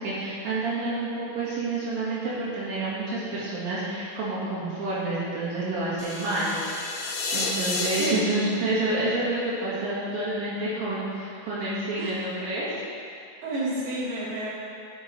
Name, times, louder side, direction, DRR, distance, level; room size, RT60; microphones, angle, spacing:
voice 1, 0.0-7.1 7.3-12.8, right 2 dB, 80° right, -8 dB, 3.3 m, -29 dB
sound 1, 6.0-10.1, left 3 dB, 80° left, 2.9 m, -32 dB
voice 2, 13.4-14.5, right 1 dB, 60° right, -8 dB, 3.3 m, -30 dB
15.5 x 5.4 x 3.2 m, 2.4 s
omnidirectional pair, 4.1 m